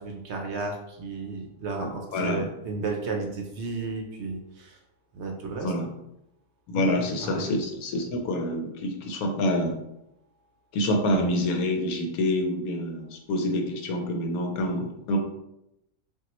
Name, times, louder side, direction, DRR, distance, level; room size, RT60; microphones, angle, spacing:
voice 1, 0.0-4.8 5.1-5.7 6.7-7.5, right 3 dB, 65° right, 2 dB, 0.8 m, -33 dB
voice 2, 1.8-2.4 5.6-5.9 6.7-9.8 10.7-15.2, left 1 dB, 85° left, 3 dB, 1.2 m, -27 dB
5.7 x 2.3 x 3.0 m, 0.85 s
omnidirectional pair, 1.5 m